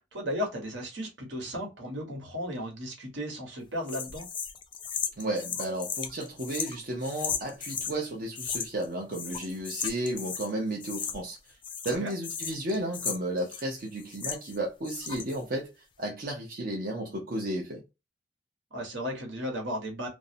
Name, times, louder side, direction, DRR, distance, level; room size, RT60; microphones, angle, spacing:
voice 1, 0.1-4.2 12.0-12.1 18.7-20.1, equal, 80° right, 1.2 m, -35 dB
sound 1, 3.9-8.0 8.4-8.9 9.1-10.5 10.8-11.4 11.6-14.6 14.8-15.4, left 7 dB, 25° left, 0.3 m, -36 dB
voice 2, 5.2-11.4 11.8-15.7 16.0-17.8, right 1 dB, 50° right, 0.6 m, -33 dB
2.6 x 2.0 x 2.6 m
head